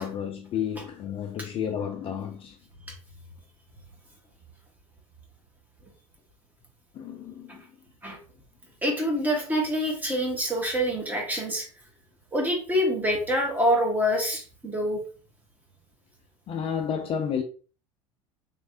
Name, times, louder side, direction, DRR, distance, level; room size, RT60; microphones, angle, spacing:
voice 1, 0.0-2.6 6.9-7.6 16.5-17.4, left 8 dB, 35° left, 0.4 m, -31 dB
voice 2, 8.8-11.6 12.3-15.0, equal, 10° right, 1.3 m, -26 dB
3.4 x 3.2 x 2.7 m
figure-of-eight pair, 70°, 17 cm